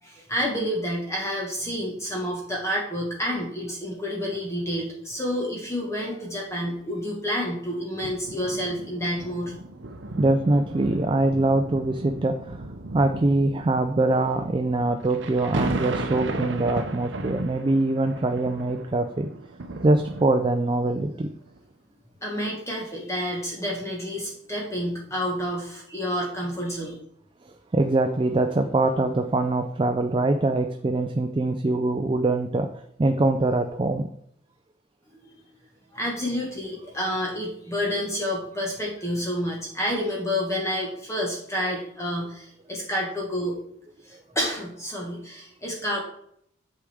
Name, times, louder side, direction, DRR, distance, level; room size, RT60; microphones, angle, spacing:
voice 1, 0.0-9.5 22.2-27.0 35.9-43.6 44.0-46.0, equal, 15° left, -2 dB, 1.4 m, -29 dB
sound 1, 8.0-20.8 21.5-21.6, right 2 dB, 65° right, 0.7 m, -35 dB
voice 2, 10.2-12.6 12.9-19.3 19.8-21.3 27.5-32.7 33.0-34.1, right 2 dB, 25° right, 6 dB, 0.4 m, -23 dB
8.2 x 4.8 x 3.5 m, 0.69 s
head